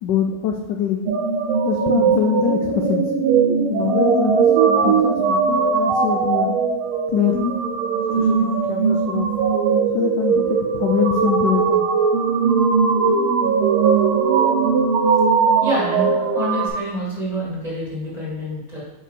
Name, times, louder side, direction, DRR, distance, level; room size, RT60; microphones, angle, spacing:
voice 1, 0.0-1.1 1.6-3.0 3.7-4.5 4.8-6.5 7.1-7.5 8.2-9.3 9.9-11.9, left 8 dB, 75° left, 3 dB, 1.0 m, -23 dB
sound 1, 1.1-16.7, right 5 dB, 90° right, 1.5 m, -19 dB
voice 2, 15.6-18.8, equal, 20° right, -7 dB, 2.0 m, -27 dB
5.5 x 5.2 x 3.3 m, 0.99 s
omnidirectional pair, 2.3 m